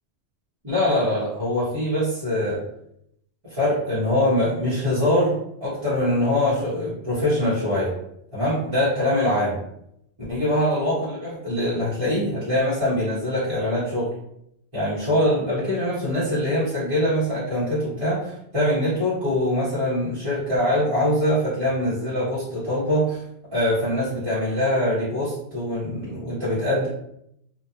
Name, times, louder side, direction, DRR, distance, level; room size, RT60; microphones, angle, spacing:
voice 1, 0.6-2.6 3.5-7.9 8.3-9.6 10.3-14.1 14.7-23.2 23.5-26.9, left 1 dB, 30° right, -13 dB, 1.1 m, -23 dB
2.8 x 2.4 x 2.4 m, 0.76 s
omnidirectional pair, 1.2 m